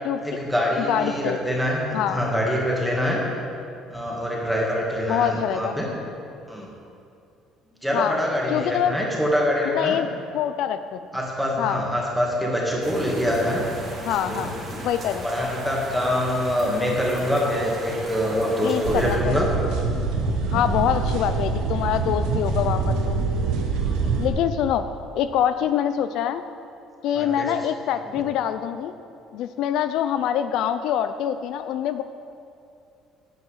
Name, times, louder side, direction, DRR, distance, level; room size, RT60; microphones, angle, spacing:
voice 1, 0.2-3.2 3.9-5.9 6.5-6.7 7.8-10.0 11.1-13.6 14.3-14.5 15.2-19.5 27.1-27.5, equal, ahead, -3 dB, 1.9 m, -24 dB
voice 2, 0.9-1.4 1.9-2.2 5.1-5.7 7.9-8.2 8.5-9.0 9.7-10.1 10.3-11.0 11.6-11.8 14.1-14.5 14.8-15.3 18.6-19.4 20.5-23.2 24.2-24.9 25.1-26.4 27.0-28.9 29.3-32.0, left 10 dB, 65° left, 10 dB, 0.4 m, -25 dB
sound 1, 12.8-19.2, right 1 dB, 35° right, 1.9 m, -36 dB
sound 2, 18.8-24.3, right 4 dB, 85° right, 1.2 m, -25 dB
9.3 x 7.8 x 6.5 m, 2.5 s
cardioid pair, 145°, 0 cm